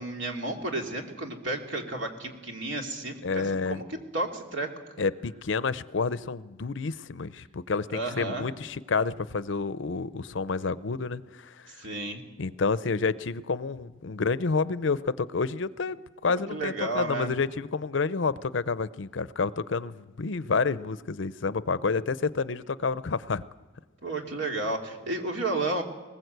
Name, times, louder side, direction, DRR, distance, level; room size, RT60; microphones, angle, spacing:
voice 1, 0.0-4.7 7.9-8.5 11.7-12.2 16.3-17.3 24.0-25.8, right 2 dB, 75° right, 2 dB, 2.6 m, -32 dB
voice 2, 3.2-3.8 5.0-11.7 12.4-23.4, left 4 dB, 75° left, 16 dB, 0.6 m, -29 dB
20.5 x 19.0 x 8.0 m, 1.2 s
head